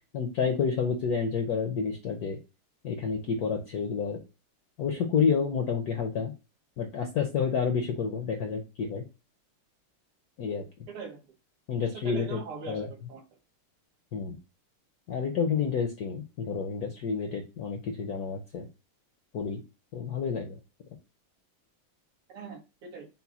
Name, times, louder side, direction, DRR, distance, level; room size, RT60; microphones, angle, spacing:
voice 1, 0.1-2.4 2.8-4.2 4.8-6.3 6.8-9.0 10.4-10.6 11.7-12.4 12.7-12.9 14.1-14.4 15.1-18.7 19.3-19.6 19.9-20.6, left 6 dB, 70° left, 4 dB, 0.9 m, -29 dB
voice 2, 10.9-11.2 11.8-13.2 22.3-23.1, right 5 dB, 80° right, 2 dB, 2.1 m, -41 dB
5.7 x 2.2 x 4.0 m, 0.29 s
omnidirectional pair, 2.4 m